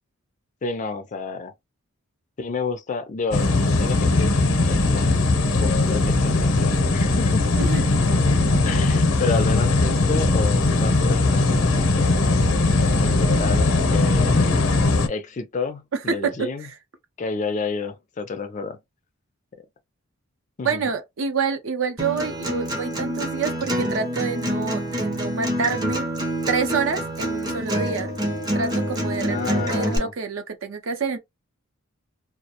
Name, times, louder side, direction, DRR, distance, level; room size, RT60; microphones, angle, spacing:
voice 1, 0.6-1.5 2.4-5.1 5.6-7.6 8.6-12.4 13.0-14.5 15.1-16.7 17.2-18.8 20.6-20.8 29.3-30.1, left 4 dB, 35° left, 0.3 m, -30 dB
sound 1, 3.3-15.1, left 2 dB, 90° left, 0.7 m, -19 dB
voice 2, 15.9-16.7 20.6-26.1 26.5-28.1 28.5-31.2, right 5 dB, 65° right, 0.5 m, -27 dB
Acoustic guitar, 22.0-30.0, equal, 20° right, 0.5 m, -26 dB
2.3 x 2.0 x 2.8 m
head